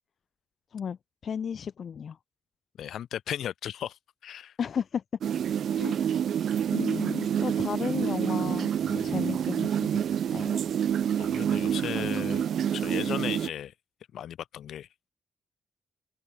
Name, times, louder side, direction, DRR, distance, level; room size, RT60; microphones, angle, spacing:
voice 1, 1.2-2.2 4.6-5.0 5.7-6.3 6.7-10.1 10.3-10.6, left 7 dB, 45° left, 1.4 m, -34 dB
voice 2, 2.8-4.6 8.8-9.4 11.2-13.7 14.1-14.9, left 10 dB, 80° left, 7.9 m, -36 dB
sound 1, 5.2-13.5, right 9 dB, 65° right, 0.8 m, -28 dB
wide cardioid pair, 170°, 0 cm